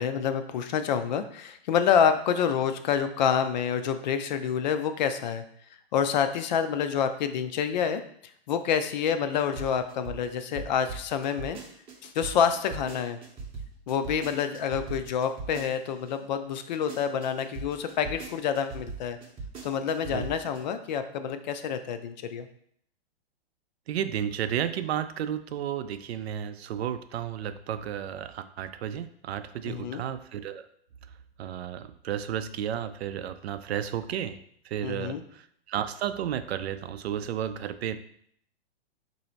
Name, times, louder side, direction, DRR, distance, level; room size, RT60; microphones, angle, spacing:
voice 1, 0.0-5.4 5.9-8.0 8.5-11.6 12.0-13.2 13.9-19.2 19.6-22.5 29.6-30.0 34.8-35.2, left 7 dB, 45° left, 9 dB, 0.4 m, -27 dB
sound 1, 9.4-16.1 16.5-20.6, right 4 dB, 20° right, 0.7 m, -40 dB
voice 2, 23.9-30.7 31.4-34.4 34.6-38.0, right 10 dB, 80° right, 11 dB, 0.5 m, -32 dB
4.0 x 2.7 x 4.3 m, 0.66 s
hypercardioid pair, 150°, 32 cm